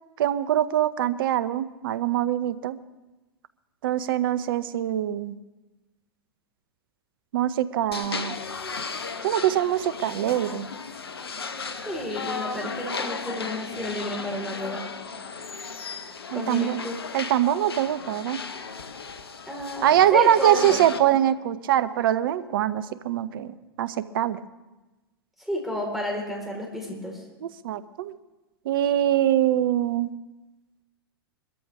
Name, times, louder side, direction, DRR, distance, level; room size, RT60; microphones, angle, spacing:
voice 1, 0.2-2.8 3.8-5.4 7.3-8.5 9.2-10.7 16.3-16.8 17.1-18.4 19.8-24.4 27.4-28.1 28.6-30.1, right 11 dB, 60° right, 15 dB, 0.8 m, -23 dB
sound 1, 7.9-21.0, left 5 dB, 80° left, 1.1 m, -35 dB
voice 2, 11.8-14.8 16.3-17.0 19.5-20.8 21.1-21.2 25.4-27.2, equal, ahead, -2 dB, 4.6 m, -31 dB
22.0 x 14.0 x 3.6 m, 1.1 s
hypercardioid pair, 100°, 13 cm